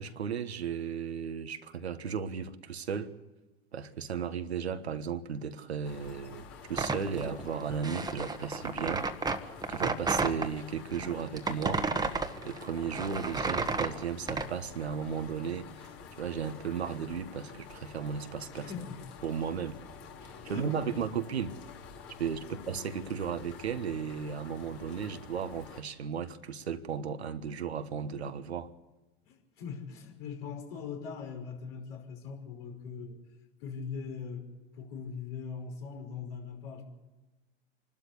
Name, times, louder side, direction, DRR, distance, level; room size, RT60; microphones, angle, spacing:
voice 1, 0.0-3.1 3.7-9.1 9.7-11.9 12.4-15.9 16.2-18.7 19.2-19.8 20.2-21.6 22.2-28.7, right 7 dB, 90° right, 1.4 m, -35 dB
sound 1, 5.8-25.8, left 6 dB, 45° left, 3.4 m, -49 dB
sound 2, 6.7-10.5 10.9-14.5, right 3 dB, 10° right, 1.4 m, -32 dB
voice 2, 18.6-19.0 20.4-20.9 22.4-22.6 29.2-33.2 33.6-36.8, left 6 dB, 65° left, 5.6 m, -41 dB
26.5 x 12.5 x 8.3 m
hypercardioid pair, 95°, 32 cm